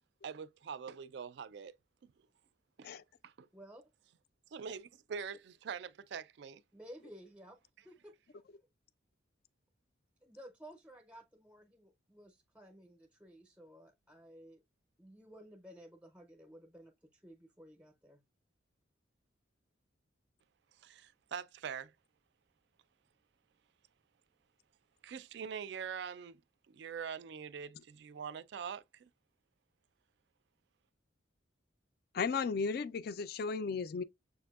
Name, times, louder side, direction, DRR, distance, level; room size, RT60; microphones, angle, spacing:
voice 1, 0.2-1.8 2.0-2.1 2.8-2.9 3.2-3.5 4.5-6.6 20.8-21.9 25.0-26.4 26.7-29.1, right 7 dB, 60° right, 0.3 m, -44 dB
voice 2, 6.7-7.6 7.8-8.7 10.2-14.6 15.0-18.2, equal, 5° right, 0.5 m, -55 dB
voice 3, 32.1-34.0, left 5 dB, 50° left, 0.3 m, -35 dB
6.6 x 2.6 x 2.3 m
head